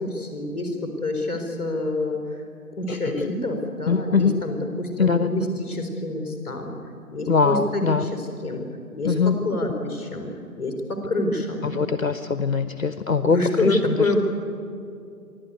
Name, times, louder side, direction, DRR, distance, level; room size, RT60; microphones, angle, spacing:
voice 1, 0.0-2.4 2.8-6.8 7.1-8.7 8.9-10.3 10.6-11.8 13.2-14.2, left 2 dB, 10° left, 1 dB, 3.5 m, -27 dB
voice 2, 2.9-3.3 3.9-4.4 5.0-5.3 7.3-8.1 9.0-9.4 11.6-14.1, left 5 dB, 55° left, 11 dB, 1.0 m, -22 dB
29.5 x 12.0 x 9.5 m, 2.6 s
figure-of-eight pair, 155°, 48 cm